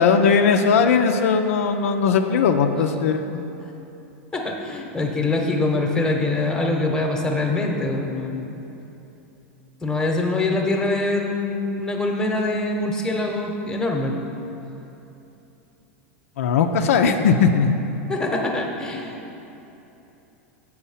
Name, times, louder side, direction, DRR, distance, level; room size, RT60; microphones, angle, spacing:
voice 1, 0.0-3.4 16.4-17.7, left 5 dB, 75° left, 5 dB, 0.4 m, -18 dB
voice 2, 4.3-8.6 9.8-14.1 18.1-19.2, left 2 dB, 10° left, 1 dB, 0.9 m, -24 dB
7.1 x 4.6 x 5.6 m, 2.9 s
hypercardioid pair, 100°, 8 cm